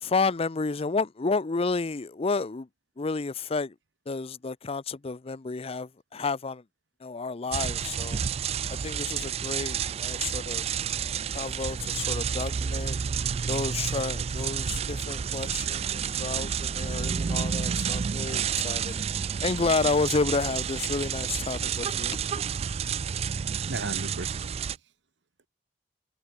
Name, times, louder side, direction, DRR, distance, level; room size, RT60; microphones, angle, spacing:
voice 1, 0.0-2.7 3.0-3.7 4.1-6.6 7.0-8.2 8.7-10.6 11.0-13.0 13.5-19.0 19.4-22.2, left 4 dB, 35° left, 0.6 m, -31 dB
sound 1, 7.5-24.8, right 7 dB, 35° right, 0.3 m, -30 dB
voice 2, 17.0-17.7 22.9-23.1 23.6-24.5, right 2 dB, 80° right, 1.8 m, -38 dB
head